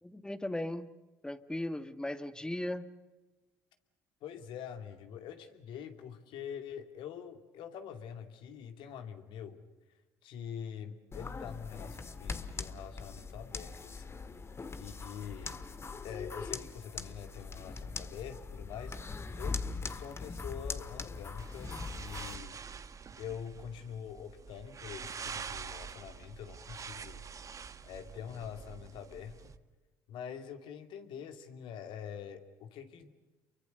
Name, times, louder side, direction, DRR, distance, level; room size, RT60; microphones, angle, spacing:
voice 1, 0.0-0.9 1.2-2.9, left 1 dB, 10° left, 12 dB, 1.6 m, -37 dB
voice 2, 4.2-9.6 10.2-14.2 14.8-15.6 16.0-19.0 19.4-22.6 23.2-27.2 27.8-29.4 30.1-33.1, left 8 dB, 65° left, 7 dB, 2.7 m, -45 dB
sound 1, 11.1-22.4, left 4 dB, 30° left, 1.7 m, -41 dB
sound 2, 21.4-29.6, right 6 dB, 35° right, 1.5 m, -46 dB
29.0 x 24.0 x 6.8 m, 1.1 s
hypercardioid pair, 65°, 9 cm